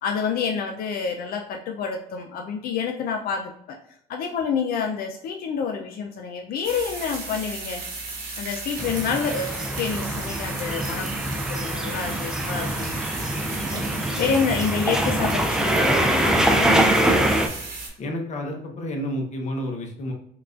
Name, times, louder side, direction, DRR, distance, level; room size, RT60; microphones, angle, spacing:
voice 1, 0.0-3.8 4.1-7.8 8.4-11.2 11.5-13.0 13.5-16.8, left 6 dB, 65° left, 3 dB, 0.4 m, -28 dB
sound 1, 6.6-17.9, right 3 dB, 65° right, 1.2 m, -35 dB
sound 2, 8.8-17.5, right 1 dB, 5° right, 0.4 m, -24 dB
voice 2, 18.0-20.1, equal, 45° left, 2 dB, 0.8 m, -30 dB
4.6 x 2.4 x 2.4 m, 0.72 s
cardioid pair, 110°, 17 cm